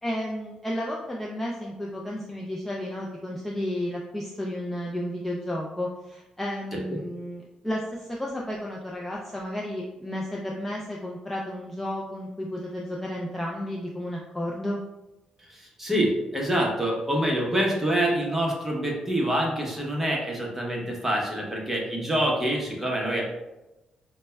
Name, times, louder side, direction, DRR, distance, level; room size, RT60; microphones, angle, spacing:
voice 1, 0.0-14.8, left 1 dB, 10° left, -2 dB, 0.4 m, -32 dB
voice 2, 15.5-23.2, right 1 dB, 10° right, -2 dB, 0.9 m, -26 dB
5.0 x 2.1 x 2.2 m, 1.0 s
cardioid pair, 90°, 2 cm